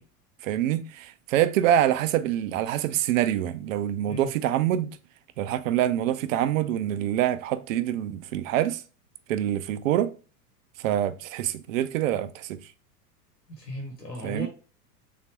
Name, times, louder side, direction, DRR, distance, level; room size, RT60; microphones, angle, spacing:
voice 1, 0.4-5.0 5.4-8.8 9.3-10.1 10.8-12.6 14.2-14.5, right 11 dB, 55° right, 0.5 m, -25 dB
voice 2, 13.5-14.5, equal, 90° left, 1.2 m, -36 dB
3.9 x 3.5 x 3.0 m
figure-of-eight pair, 90°, 48 cm